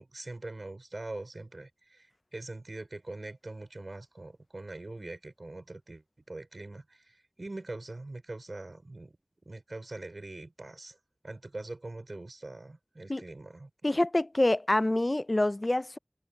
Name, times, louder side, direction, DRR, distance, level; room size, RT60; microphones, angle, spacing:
voice 1, 0.0-9.2 9.4-11.0 11.2-13.7, right 2 dB, 80° right, 5.3 m, -43 dB
voice 2, 13.8-16.0, left 1 dB, 50° left, 0.5 m, -26 dB
wide cardioid pair, 45°, 0 cm